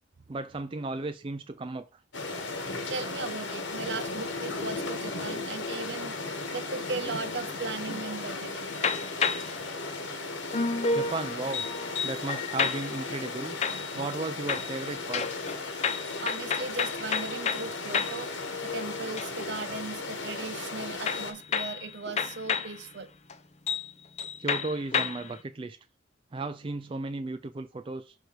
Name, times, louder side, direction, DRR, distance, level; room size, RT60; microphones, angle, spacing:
voice 1, 0.3-2.0 10.9-11.7 12.0-13.6 14.0-15.3 24.4-25.8 26.3-28.1, right 3 dB, 30° right, 0.4 m, -35 dB
sound 1, 2.1-21.3, left 3 dB, 80° left, 1.4 m, -36 dB
voice 2, 2.9-6.1 6.5-9.0 16.0-18.3 18.6-23.1, right 4 dB, 60° right, 0.8 m, -37 dB
sound 2, 8.7-9.6 10.5-13.1 13.6-14.2 14.5-18.3 18.7-19.6 21.1-22.8 23.3-23.4 23.7-23.9 24.2-25.3, left 5 dB, 35° left, 0.6 m, -31 dB
6.5 x 4.6 x 4.6 m
head